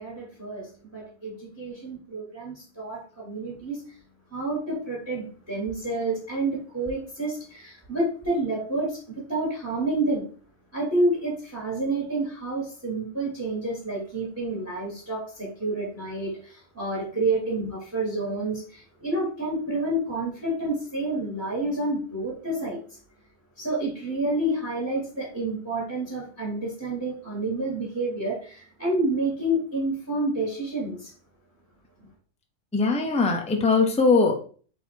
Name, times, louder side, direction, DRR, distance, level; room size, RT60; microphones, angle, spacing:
voice 1, 0.0-4.0 4.3-10.3 10.7-23.0 23.6-31.1, right 2 dB, 10° right, -4 dB, 1.6 m, -29 dB
voice 2, 32.7-34.3, left 4 dB, 10° left, 3 dB, 0.4 m, -21 dB
4.1 x 2.8 x 4.5 m, 0.42 s
omnidirectional pair, 1.4 m